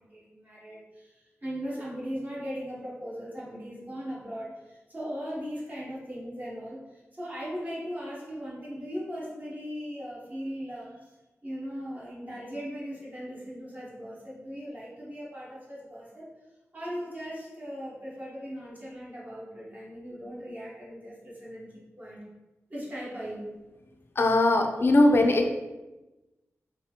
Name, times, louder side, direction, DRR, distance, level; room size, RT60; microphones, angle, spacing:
voice 1, 0.0-11.1 11.4-16.2 16.7-22.2 22.7-23.5, equal, 35° right, -7 dB, 1.0 m, -38 dB
voice 2, 24.2-25.5, left 2 dB, 50° left, 4 dB, 0.3 m, -20 dB
2.8 x 2.4 x 2.7 m, 1.1 s
wide cardioid pair, 75°, 5 cm